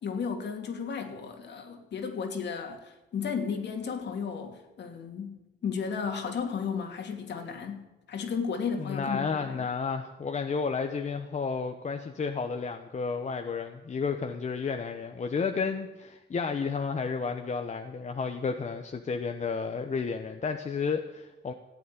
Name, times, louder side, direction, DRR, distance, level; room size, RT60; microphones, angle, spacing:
voice 1, 0.0-9.6, left 6 dB, 60° left, 2.6 m, -34 dB
voice 2, 8.8-21.5, left 5 dB, 35° left, 1.1 m, -32 dB
15.0 x 8.5 x 9.4 m
cardioid pair, 90°, 20 cm